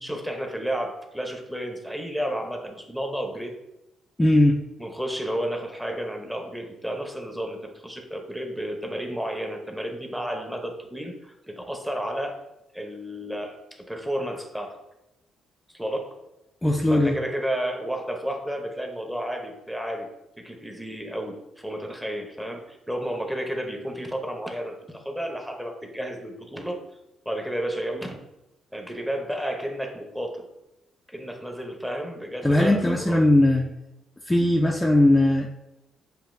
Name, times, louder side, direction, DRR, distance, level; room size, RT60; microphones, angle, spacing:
voice 1, 0.0-3.5 4.8-12.4 12.7-14.8 15.7-16.2 16.9-20.1 20.4-26.8 27.2-28.2 28.7-30.5 31.1-33.2, equal, 5° right, 3 dB, 0.8 m, -32 dB
voice 2, 4.2-4.6 16.6-17.2 32.4-33.7 34.3-35.5, left 1 dB, 15° left, 0 dB, 0.4 m, -19 dB
7.2 x 2.7 x 2.6 m, 0.91 s
cardioid pair, 90°, 0 cm